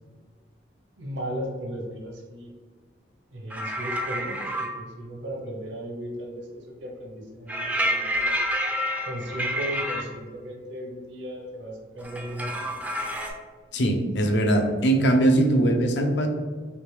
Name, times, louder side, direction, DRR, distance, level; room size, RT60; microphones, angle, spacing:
voice 1, 1.0-2.5 3.3-8.4 9.0-12.7, equal, 70° right, -1 dB, 0.7 m, -36 dB
sound 1, 3.5-4.7 7.5-10.0 12.0-13.3, equal, 10° right, 0.3 m, -28 dB
voice 2, 13.7-16.3, right 1 dB, 65° left, 4 dB, 0.5 m, -21 dB
3.3 x 2.9 x 3.1 m, 1.5 s
head